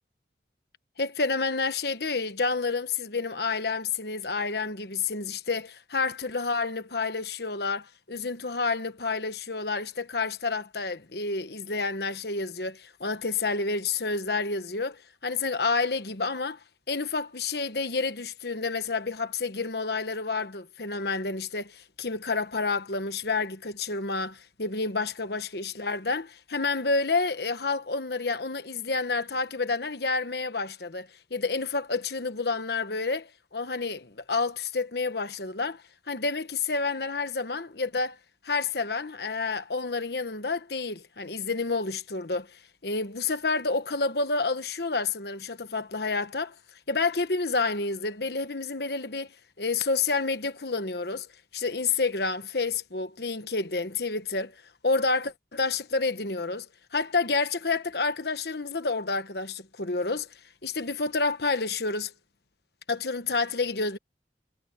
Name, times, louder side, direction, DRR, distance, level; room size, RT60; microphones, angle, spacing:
voice 1, 1.0-16.6 16.9-38.2 38.4-46.6 46.9-49.3 49.6-51.3 51.5-56.7 56.9-60.3 60.6-62.1 62.9-64.0, left 4 dB, 60° left, 1.3 m, -29 dB
head